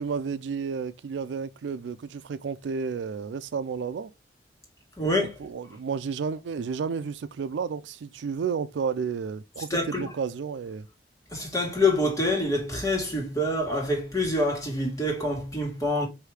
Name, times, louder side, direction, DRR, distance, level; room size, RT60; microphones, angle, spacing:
voice 1, 0.0-4.1 5.2-10.9, right 6 dB, 85° right, 0.4 m, -32 dB
voice 2, 5.0-5.3 9.7-10.1 11.3-16.1, left 1 dB, 20° left, 1.5 m, -26 dB
4.8 x 2.7 x 3.2 m
head